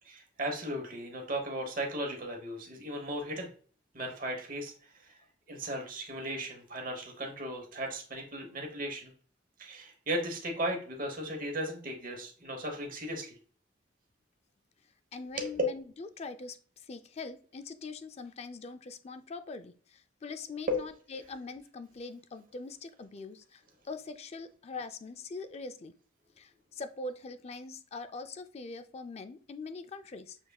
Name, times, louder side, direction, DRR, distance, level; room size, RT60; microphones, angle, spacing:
voice 1, 0.0-3.5 3.9-5.1 5.5-9.1 9.6-13.4 15.3-15.5 20.7-20.8, right 1 dB, 45° right, 2 dB, 1.0 m, -36 dB
voice 2, 15.1-25.9 26.4-30.4, left 3 dB, 35° left, 10 dB, 0.4 m, -43 dB
6.3 x 3.4 x 2.3 m, 0.43 s
head